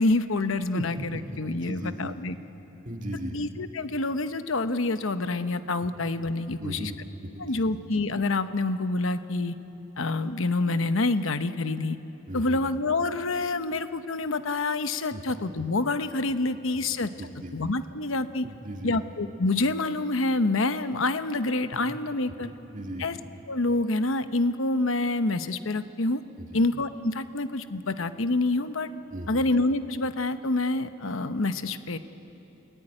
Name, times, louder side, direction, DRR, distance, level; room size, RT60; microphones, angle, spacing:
voice 1, 0.0-2.4 3.3-6.9 7.4-9.6 10.0-12.0 12.3-17.1 17.5-18.4 18.8-22.5 23.0-23.2 23.5-26.2 26.5-28.9 29.3-32.0, left 2 dB, 70° left, 10 dB, 1.0 m, -27 dB
voice 2, 0.7-2.2 2.8-3.4 6.6-7.0 7.3-7.8 12.3-12.6 15.1-15.2 17.2-17.5 18.4-19.0 21.7-21.8 22.4-23.1 26.4-26.6 29.1-29.4, right 1 dB, 35° right, 2 dB, 1.9 m, -37 dB
29.0 x 19.0 x 9.9 m, 3.0 s
head